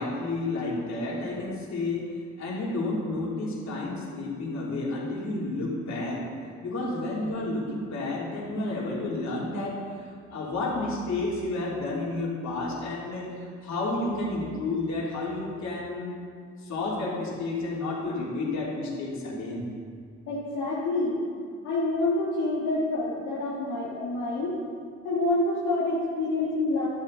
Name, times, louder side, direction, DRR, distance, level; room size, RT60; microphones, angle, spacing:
voice 1, 0.0-2.1 2.4-6.3 6.6-16.2 16.6-19.7, left 2 dB, 65° left, -5 dB, 2.9 m, -31 dB
voice 2, 20.3-21.2 21.6-24.6 25.0-26.9, left 2 dB, 90° left, -7 dB, 1.8 m, -27 dB
11.5 x 8.5 x 3.9 m, 2.1 s
cardioid pair, 90°, 30 cm